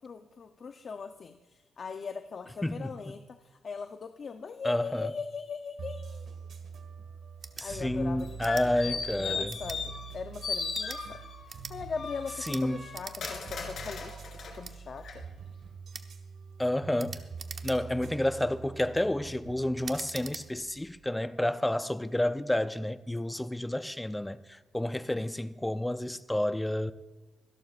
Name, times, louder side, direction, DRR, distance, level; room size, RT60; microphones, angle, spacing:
voice 1, 0.0-6.3 7.6-11.2 11.7-14.2 14.6-15.2, left 5 dB, 45° left, 0.6 m, -40 dB
voice 2, 2.6-3.2 4.6-5.1 7.6-9.6 12.4-12.8 16.6-17.2 17.6-26.9, left 1 dB, 10° left, 0.5 m, -30 dB
sound 1, 5.8-21.0, right 5 dB, 65° right, 1.7 m, -45 dB
sound 2, 7.3-7.7 8.4-8.7 9.5-9.8 10.6-11.0 11.5-11.8 12.4-12.6 12.9-13.3 13.7-13.8 14.6-14.8 15.9-16.1 17.0-18.0 18.6-18.9 19.8-20.4, right 5 dB, 45° right, 0.9 m, -43 dB
sound 3, 8.2-10.1 10.4-11.4 11.9-14.6 15.0-15.1, left 5 dB, 65° left, 3.0 m, -37 dB
25.0 x 12.0 x 2.5 m
cardioid pair, 120°, 0 cm